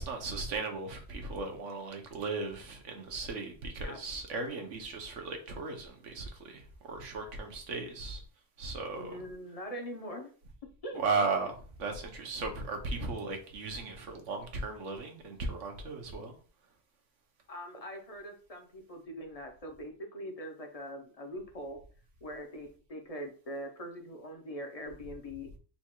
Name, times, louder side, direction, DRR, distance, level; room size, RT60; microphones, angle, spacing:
voice 1, 0.0-8.2 8.6-9.2 10.9-16.4, right 3 dB, 90° right, 1.3 m, -36 dB
voice 2, 9.0-10.3 10.8-11.2 17.5-21.8 22.2-25.5, equal, 35° left, 0.7 m, -42 dB
4.2 x 2.4 x 4.4 m
omnidirectional pair, 1.2 m